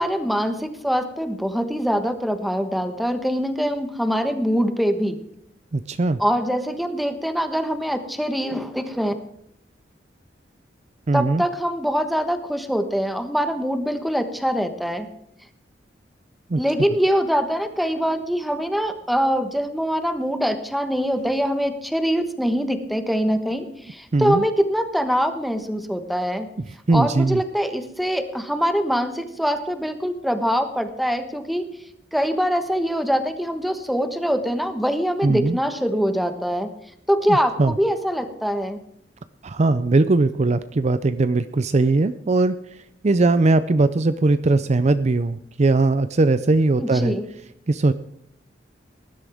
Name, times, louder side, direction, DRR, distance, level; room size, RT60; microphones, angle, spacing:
voice 1, 0.0-5.2 6.2-9.1 11.1-15.1 16.6-26.5 26.9-31.7 32.1-36.7 37.1-38.8 46.8-47.3, equal, ahead, 8 dB, 1.2 m, -23 dB
voice 2, 5.7-6.2 11.1-11.4 16.5-16.6 24.1-24.4 26.9-27.4 35.2-35.6 37.3-37.7 39.4-42.6 43.0-47.1 47.7-47.9, right 3 dB, 40° right, 12 dB, 0.5 m, -19 dB
19.5 x 11.5 x 3.5 m, 0.75 s
head